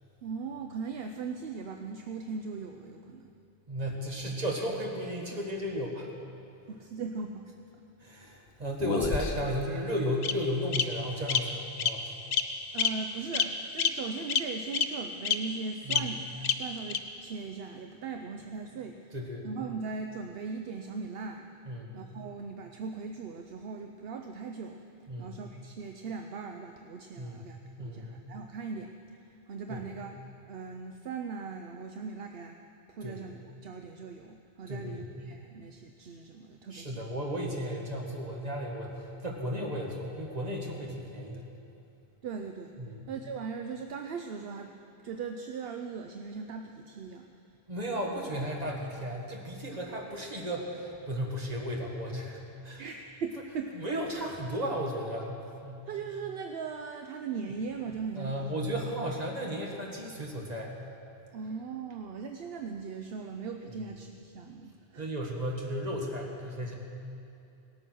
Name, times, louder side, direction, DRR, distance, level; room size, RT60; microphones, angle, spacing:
voice 1, 0.2-3.3 5.5-5.6 6.7-7.4 8.9-9.0 12.7-21.5 21.9-24.8 25.2-30.2 30.5-32.6 32.9-37.1 42.2-42.8 43.1-44.7 45.0-47.3 52.8-53.7 55.9-58.5 61.3-65.1, right 5 dB, 70° right, 5 dB, 0.9 m, -39 dB
voice 2, 3.7-6.1 8.0-12.1 15.9-16.1 19.1-19.5 21.7-22.0 25.1-25.3 27.2-27.4 27.8-28.2 29.7-29.9 33.0-33.2 34.7-35.0 36.7-41.4 42.8-43.1 47.7-52.8 53.8-55.9 58.2-60.8 65.0-66.7, equal, 40° right, -1 dB, 1.8 m, -34 dB
Bird vocalization bird call bird song, 8.8-9.6 10.2-10.3 10.7-10.8 11.3-11.4 11.8-11.9 12.3-12.4 12.8-12.9 13.3-13.5 13.8-13.9 14.3-14.4 14.7-14.8 15.2-15.3 15.9-16.0 16.4-16.5 16.9-17.0, left 7 dB, 80° left, 1.0 m, -26 dB
17.5 x 9.0 x 6.2 m, 2.6 s
omnidirectional pair, 1.1 m